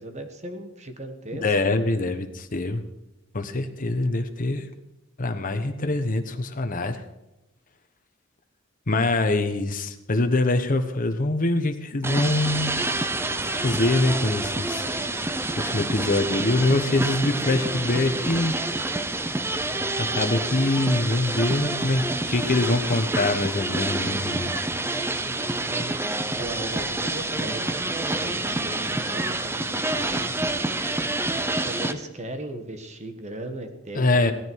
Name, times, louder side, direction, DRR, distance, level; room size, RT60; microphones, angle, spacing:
voice 1, 0.0-1.7 9.5-9.6 25.2-26.0 26.4-30.6 31.3-34.3, right 1 dB, 35° right, 7 dB, 1.4 m, -38 dB
voice 2, 1.3-2.8 3.3-4.6 5.2-7.0 8.9-12.7 13.4-14.9 15.6-18.5 20.0-24.5 33.9-34.3, left 2 dB, 45° left, 7 dB, 1.1 m, -24 dB
sound 1, 12.0-31.9, right 2 dB, 10° right, 0.7 m, -28 dB
16.5 x 13.0 x 4.7 m, 0.95 s
head